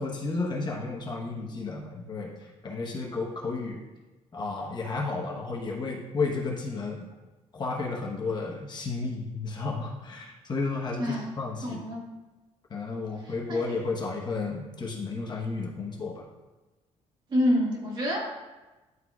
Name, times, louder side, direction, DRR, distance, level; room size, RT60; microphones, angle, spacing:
voice 1, 0.0-2.3 2.6-3.8 4.3-7.1 7.5-11.8 12.7-16.2, left 3 dB, 35° left, -2 dB, 1.1 m, -32 dB
voice 2, 11.0-11.3 11.6-12.0 13.2-13.6 17.3-18.3, equal, 40° right, -3 dB, 1.6 m, -27 dB
11.0 x 3.7 x 2.4 m, 1.1 s
cardioid pair, 125°, 12 cm